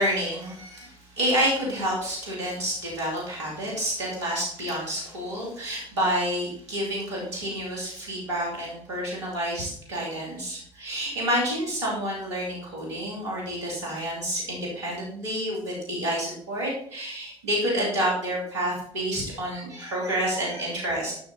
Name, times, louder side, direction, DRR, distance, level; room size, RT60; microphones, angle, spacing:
voice 1, 0.0-21.1, equal, 90° right, -4 dB, 3.0 m, -29 dB
12.0 x 6.3 x 4.3 m, 0.64 s
hypercardioid pair, 55°, 14 cm